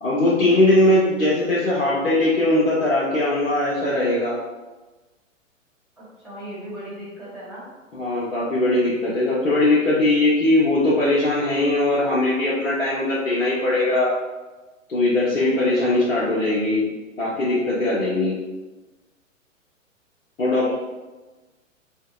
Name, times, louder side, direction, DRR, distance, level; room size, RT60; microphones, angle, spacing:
voice 1, 0.0-4.4 7.9-14.1 14.9-16.9 17.2-18.4 20.4-20.8, left 2 dB, 75° left, -7 dB, 0.7 m, -20 dB
voice 2, 6.0-7.6 20.6-20.8, right 1 dB, ahead, -13 dB, 1.1 m, -37 dB
2.7 x 2.0 x 2.2 m, 1.2 s
figure-of-eight pair, 115°, 40 cm